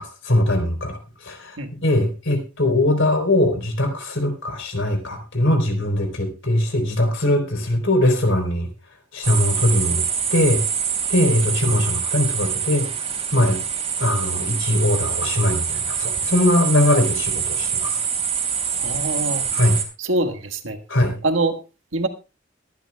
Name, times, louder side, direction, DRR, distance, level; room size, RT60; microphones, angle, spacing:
voice 1, 0.0-8.7 9.1-10.0 10.3-10.6 11.1-12.9 13.3-13.6 14.0-18.0 19.5-19.8 20.9-21.2, left 1 dB, 70° left, 5 dB, 3.8 m, -21 dB
sound 1, 9.2-19.8, right 7 dB, 30° right, 3.0 m, -25 dB
voice 2, 18.8-19.5 20.0-20.8 21.2-21.6 21.9-22.1, right 2 dB, 75° right, 6 dB, 1.8 m, -24 dB
22.0 x 11.5 x 2.3 m, 0.30 s
head